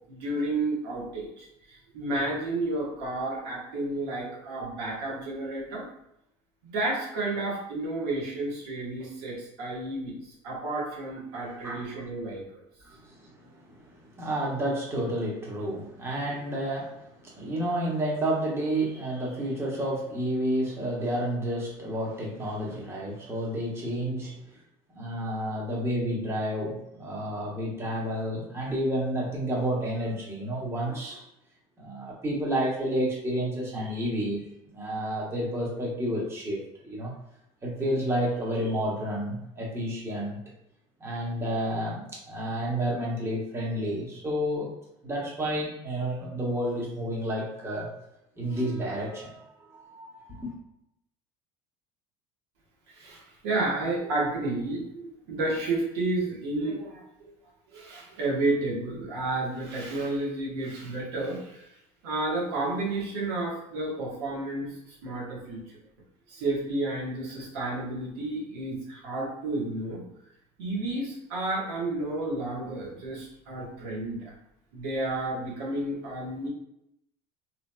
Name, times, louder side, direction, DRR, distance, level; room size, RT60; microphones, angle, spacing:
voice 1, 0.1-5.9 6.6-12.4 52.9-57.3 57.7-61.7 62.0-65.8 66.3-70.0 70.6-74.3 74.7-76.5, right 2 dB, 85° right, -4 dB, 1.1 m, -31 dB
voice 2, 11.3-11.9 12.9-24.4 24.9-31.2 31.8-34.4 34.7-37.1 37.6-40.4 41.0-44.7 45.0-47.9 48.4-50.5, right 1 dB, 20° right, -4 dB, 1.0 m, -30 dB
2.9 x 2.7 x 2.2 m, 0.81 s
supercardioid pair, 110°, 14 cm